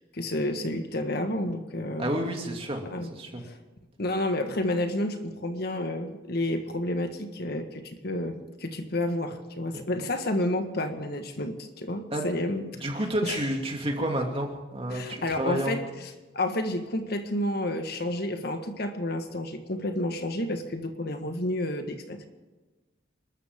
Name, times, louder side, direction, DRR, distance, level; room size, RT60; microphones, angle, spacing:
voice 1, 0.1-2.1 2.9-3.1 3.4-3.6 4.0-12.6 13.2-13.5 14.9-22.2, left 1 dB, 55° left, 6 dB, 1.6 m, -30 dB
voice 2, 2.0-3.4 9.7-9.8 12.1-12.3 12.8-15.8, right 1 dB, 30° right, 2 dB, 2.6 m, -30 dB
28.0 x 13.5 x 3.7 m, 1.2 s
head